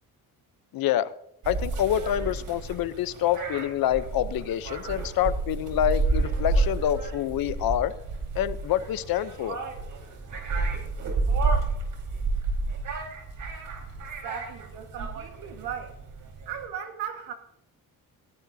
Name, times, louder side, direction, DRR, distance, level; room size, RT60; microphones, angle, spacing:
voice 1, 0.7-1.1 1.5-7.9 8.3-9.6, left 11 dB, 70° left, 14 dB, 0.8 m, -27 dB
sound 1, 1.4-16.7, right 3 dB, 60° right, 4.5 m, -30 dB
voice 2, 13.9-16.0 16.5-17.3, right 8 dB, 80° right, 5 dB, 1.7 m, -37 dB
19.5 x 17.5 x 2.8 m, 0.74 s
cardioid pair, 130°, 36 cm